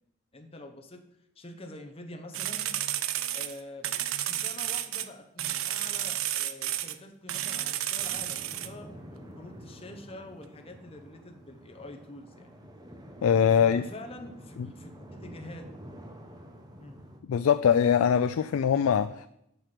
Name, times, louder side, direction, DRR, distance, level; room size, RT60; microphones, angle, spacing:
voice 1, 0.3-1.0 1.4-2.8 3.3-12.5 13.6-15.7 16.8-16.9, left 1 dB, 25° left, 4 dB, 0.9 m, -46 dB
sound 1, 2.3-5.1 5.4-7.0 7.3-8.7, right 12 dB, 80° right, 0.5 m, -31 dB
sound 2, 8.0-17.2, equal, 20° right, 0.9 m, -48 dB
voice 2, 13.2-13.8 17.3-19.3, left 8 dB, 90° left, 12 dB, 0.3 m, -22 dB
8.0 x 5.9 x 6.0 m, 0.81 s
head